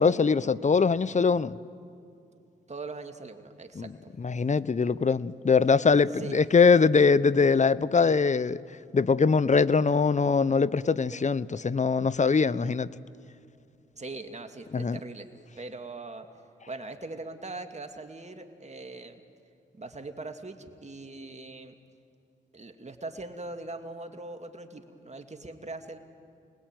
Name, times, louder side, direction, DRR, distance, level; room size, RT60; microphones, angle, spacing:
voice 1, 0.0-1.6 3.8-3.9 4.2-8.6 8.9-12.9 14.7-15.0, left 5 dB, 35° left, 18 dB, 0.8 m, -22 dB
voice 2, 2.7-4.1 6.1-6.4 13.9-15.3 15.6-16.3 16.7-19.2 19.7-21.7 22.5-26.0, right 2 dB, 35° right, 6 dB, 2.6 m, -41 dB
29.0 x 20.0 x 9.2 m, 2.5 s
supercardioid pair, 45°, 21 cm